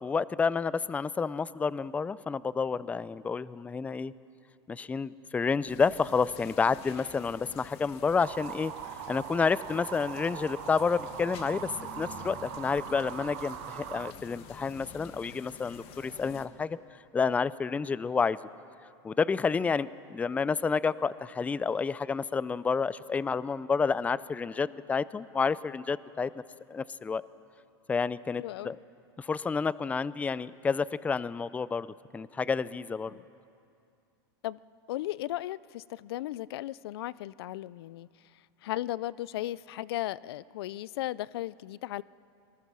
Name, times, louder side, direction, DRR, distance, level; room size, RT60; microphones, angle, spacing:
voice 1, 0.0-4.1 4.7-8.7 9.1-11.7 12.0-16.8 17.1-18.4 19.0-26.3 26.7-27.2 27.9-28.8 29.2-33.2, left 5 dB, 10° left, 18 dB, 0.4 m, -29 dB
sound 1, 5.7-16.5, left 6 dB, 45° left, 1.7 m, -48 dB
sound 2, 8.2-14.1, right 15 dB, 65° right, 0.7 m, -41 dB
voice 2, 28.4-28.7 33.1-33.2 34.4-34.6 34.9-38.1 38.6-42.0, left 15 dB, 75° left, 21 dB, 0.4 m, -36 dB
25.0 x 20.0 x 6.2 m, 2.5 s
supercardioid pair, 120°, 13 cm